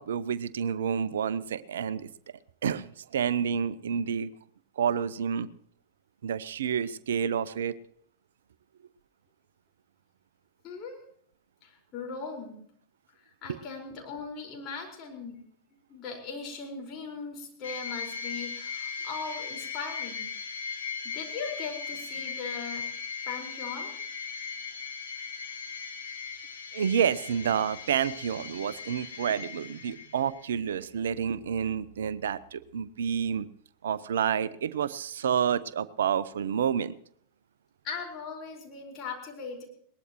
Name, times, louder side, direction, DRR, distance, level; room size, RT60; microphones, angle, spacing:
voice 1, 0.0-2.1 2.6-4.3 4.8-5.5 6.2-7.8 13.5-13.6 26.7-33.5 33.8-36.9, right 8 dB, 65° right, 18 dB, 0.7 m, -29 dB
voice 2, 10.6-11.0 11.6-12.6 13.2-15.4 15.9-20.6 21.0-22.9 23.2-23.9 37.8-39.7, left 5 dB, 35° left, 0 dB, 4.9 m, -39 dB
sound 1, 17.6-30.5, left 6 dB, 75° left, 3.3 m, -38 dB
21.5 x 19.5 x 3.1 m, 0.63 s
figure-of-eight pair, 90°, 0 cm